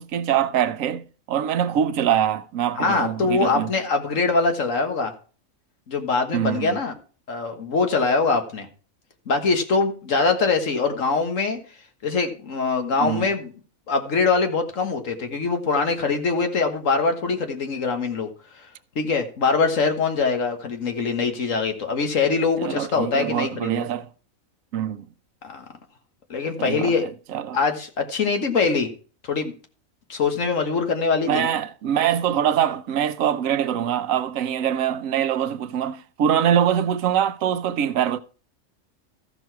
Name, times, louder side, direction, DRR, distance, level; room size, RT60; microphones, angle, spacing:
voice 1, 0.0-3.7 6.3-6.8 13.0-13.3 22.6-24.1 24.7-25.1 26.6-27.6 31.3-38.2, right 9 dB, 85° right, 1.1 m, -24 dB
voice 2, 2.8-5.1 5.9-6.9 7.3-8.7 9.3-11.6 12.0-13.5 13.9-18.3 19.0-23.9 25.4-25.7 26.3-27.1 27.5-28.9 29.3-29.5 30.1-31.5, left 4 dB, 75° left, 1.8 m, -23 dB
14.0 x 6.1 x 4.6 m
omnidirectional pair, 1.4 m